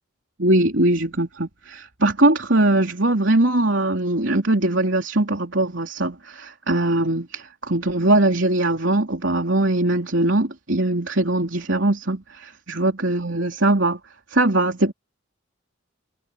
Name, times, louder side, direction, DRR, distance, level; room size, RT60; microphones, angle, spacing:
voice 1, 0.4-14.0 14.3-14.9, right 2 dB, 65° right, 3.6 m, -21 dB
head